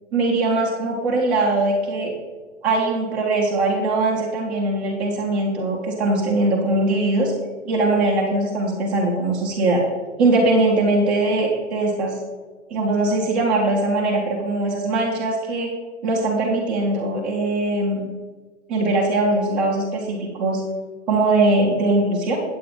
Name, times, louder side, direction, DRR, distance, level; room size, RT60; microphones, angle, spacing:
voice 1, 0.1-2.1 2.6-7.3 7.6-9.8 10.2-12.1 12.7-15.7 16.0-18.1 18.7-20.6 21.1-22.4, right 2 dB, 5° right, -6 dB, 0.4 m, -21 dB
8.5 x 8.4 x 3.7 m, 1.3 s
hypercardioid pair, 155°, 38 cm